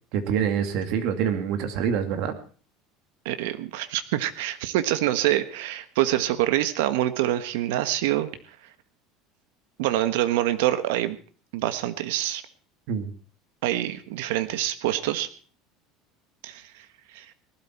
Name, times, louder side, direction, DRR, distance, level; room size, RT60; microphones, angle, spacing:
voice 1, 0.1-2.4 12.9-13.1, right 7 dB, 55° right, 7 dB, 2.3 m, -26 dB
voice 2, 3.2-8.3 9.8-11.2 11.5-12.4 13.6-15.3 16.4-16.6 17.1-17.2, right 14 dB, 80° right, 11 dB, 1.3 m, -25 dB
19.0 x 12.5 x 4.4 m, 0.40 s
cardioid pair, 175°, 0 cm